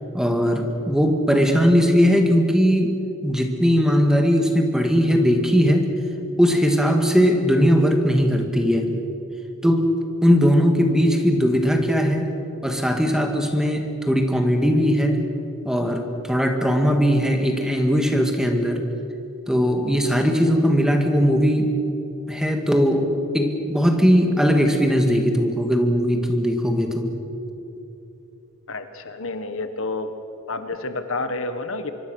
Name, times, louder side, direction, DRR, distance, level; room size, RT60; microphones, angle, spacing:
voice 1, 0.1-3.0 3.2-5.9 6.4-9.0 9.6-12.3 12.6-15.2 15.6-18.8 19.5-21.8 22.3-27.2, equal, 5° right, 4 dB, 2.0 m, -19 dB
voice 2, 28.7-30.1 30.5-31.9, left 3 dB, 65° left, 9 dB, 1.5 m, -29 dB
25.5 x 23.5 x 6.4 m, 2.9 s
head